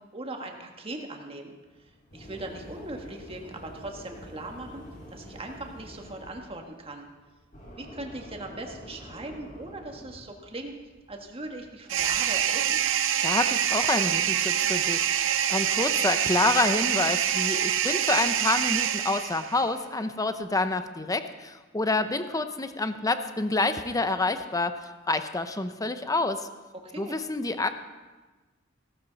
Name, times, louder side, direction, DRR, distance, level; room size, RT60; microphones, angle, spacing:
voice 1, 0.1-1.5 1.8-4.8 5.1-7.1 7.8-10.7 11.1-12.8 26.7-27.1, right 2 dB, 30° right, 2 dB, 1.6 m, -39 dB
sound 1, 1.7-12.1, equal, 45° left, 4.3 m, -47 dB
sound 2, 11.9-19.6, right 9 dB, 70° right, 0.6 m, -26 dB
voice 2, 13.2-24.8 25.1-26.5 27.0-27.7, left 2 dB, 20° left, 10 dB, 0.7 m, -28 dB
16.5 x 13.0 x 4.1 m, 1.2 s
head